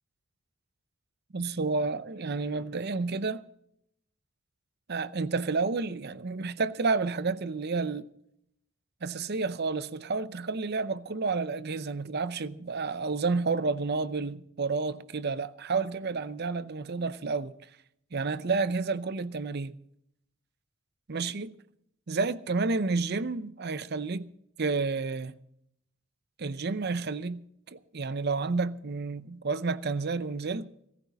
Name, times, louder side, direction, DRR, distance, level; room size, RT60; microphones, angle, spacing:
voice 1, 1.3-3.4 4.9-8.1 9.0-17.5 18.1-19.8 21.1-21.5 22.1-24.3 24.6-25.3 26.4-30.7, right 4 dB, 50° right, 0.6 m, -30 dB
18.0 x 14.5 x 4.1 m
head